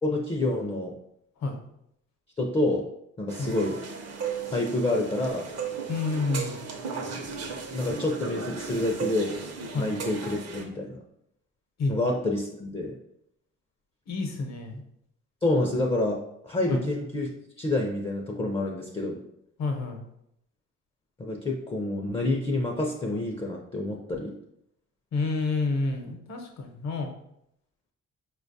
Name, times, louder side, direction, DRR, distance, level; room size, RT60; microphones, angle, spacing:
voice 1, 0.0-0.9 2.4-2.9 3.2-3.8 4.5-5.5 7.7-9.4 9.7-11.0 11.9-13.0 15.4-16.2 16.4-17.3 17.6-19.2 21.2-24.3, left 2 dB, 20° left, 0 dB, 0.4 m, -28 dB
sound 1, 3.3-10.6, right 5 dB, 55° right, 0.6 m, -36 dB
voice 2, 5.9-6.6 9.7-9.9 11.8-11.9 14.1-14.8 16.7-16.8 19.6-20.0 25.1-27.1, left 3 dB, 60° left, 4 dB, 0.8 m, -29 dB
4.4 x 2.2 x 2.6 m, 0.76 s
cardioid pair, 90°, 30 cm